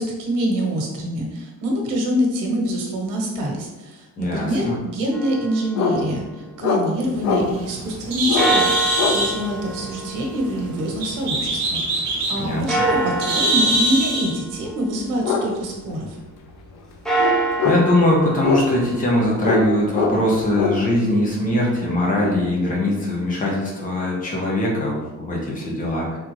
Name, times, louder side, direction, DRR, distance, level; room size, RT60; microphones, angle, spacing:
voice 1, 0.0-16.2, equal, 90° right, 0 dB, 1.2 m, -25 dB
voice 2, 4.2-4.7 12.4-12.6 17.6-26.2, left 1 dB, 25° left, -3 dB, 1.0 m, -21 dB
sound 1, 5.1-7.2 8.4-11.7 12.7-15.6 16.9-20.9, right 2 dB, ahead, 0.5 m, -28 dB
sound 2, 5.8-6.0 6.6-6.8 7.2-7.4 8.2-8.5 9.0-9.2 11.2-11.4 14.3-14.4 15.2-15.5 15.8-15.9 16.3-16.6 17.2-17.9 18.4-18.9 19.4-19.7 19.9-20.8, left 5 dB, 65° left, 0.6 m, -22 dB
Bird, 7.0-14.3, right 1 dB, 65° right, 1.0 m, -24 dB
3.7 x 3.7 x 3.1 m, 1.1 s
cardioid pair, 175°, 31 cm